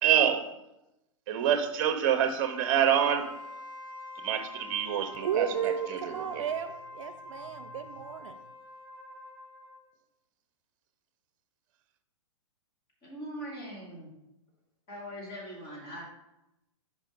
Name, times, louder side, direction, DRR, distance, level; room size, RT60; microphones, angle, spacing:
voice 1, 0.0-0.5 1.3-3.3 4.2-6.5, right 9 dB, 40° right, 0.7 m, -27 dB
Wind instrument woodwind instrument, 2.4-9.9, left 3 dB, 10° right, 2.1 m, -45 dB
voice 2, 5.2-8.4, right 8 dB, 75° right, 0.5 m, -33 dB
voice 3, 13.0-14.1 14.9-16.0, equal, 30° left, 2.8 m, -41 dB
5.4 x 5.2 x 5.2 m
hypercardioid pair, 145°, 17 cm